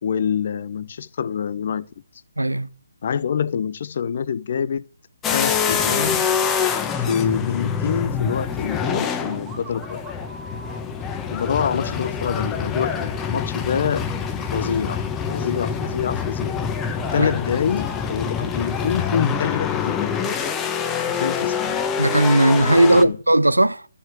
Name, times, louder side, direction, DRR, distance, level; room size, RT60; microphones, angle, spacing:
voice 1, 0.0-1.9 3.0-4.9 5.3-6.3 7.0-10.0 11.3-14.1 14.4-15.0 15.3-16.6 17.1-20.1 21.1-21.6 22.9-23.2, left 7 dB, 45° left, 0.5 m, -26 dB
voice 2, 2.4-2.7 17.2-17.3 22.0-23.9, right 1 dB, 85° right, 0.6 m, -17 dB
sound 1, 5.2-23.0, left 6 dB, 15° left, 1.0 m, -25 dB
sound 2, 9.3-13.1, right 3 dB, 20° right, 1.4 m, -45 dB
12.0 x 5.5 x 7.8 m
figure-of-eight pair, 140°, 0 cm